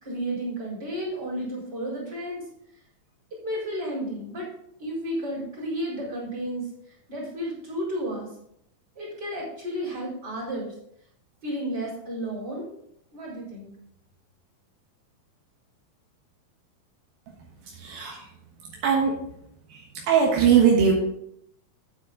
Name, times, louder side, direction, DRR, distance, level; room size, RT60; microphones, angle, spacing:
voice 1, 0.0-2.4 3.3-4.5 4.8-6.7 7.1-8.3 8.9-10.7 11.4-12.7 13.1-13.7, equal, 25° right, -5 dB, 5.1 m, -32 dB
voice 2, 17.6-18.3 18.6-19.1 19.7-20.9, right 7 dB, 80° right, -1 dB, 3.1 m, -21 dB
9.4 x 8.7 x 3.8 m, 0.73 s
omnidirectional pair, 4.2 m